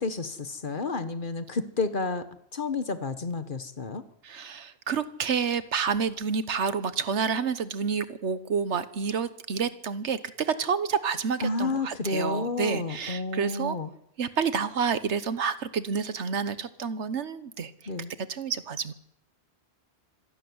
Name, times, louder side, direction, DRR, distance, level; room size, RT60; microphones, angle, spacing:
voice 1, 0.0-2.3 2.5-4.0 11.4-13.9 17.9-18.1, left 3 dB, 50° left, 11 dB, 1.4 m, -30 dB
voice 2, 4.2-13.8 14.2-17.7 18.3-18.9, right 6 dB, 85° right, 13 dB, 1.4 m, -29 dB
25.5 x 11.5 x 9.6 m, 0.77 s
omnidirectional pair, 1.1 m